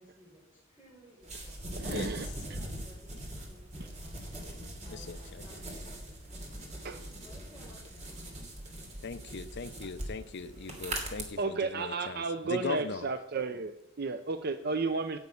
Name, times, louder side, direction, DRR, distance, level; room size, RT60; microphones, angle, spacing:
voice 1, 0.0-8.2 8.6-9.0, equal, 10° right, -6 dB, 4.2 m, -58 dB
sound 1, 1.2-11.2, right 1 dB, 35° right, 2.9 m, -41 dB
voice 2, 1.8-2.3 6.8-7.0 11.4-13.7 14.0-15.2, right 4 dB, 50° right, 9 dB, 0.6 m, -32 dB
voice 3, 4.9-5.4 9.0-13.0, left 4 dB, 55° left, 12 dB, 0.6 m, -39 dB
10.5 x 8.2 x 8.5 m, 0.92 s
head